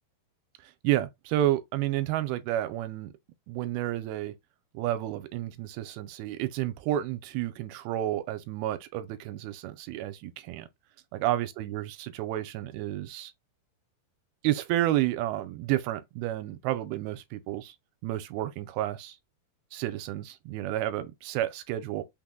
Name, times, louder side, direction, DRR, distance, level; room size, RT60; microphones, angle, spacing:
voice 1, 0.8-3.1 3.5-4.3 4.7-10.7 11.1-13.3 14.4-17.7 18.0-19.2 19.7-22.0, right 13 dB, 85° right, 2.4 m, -30 dB
5.9 x 2.0 x 3.6 m
omnidirectional pair, 4.4 m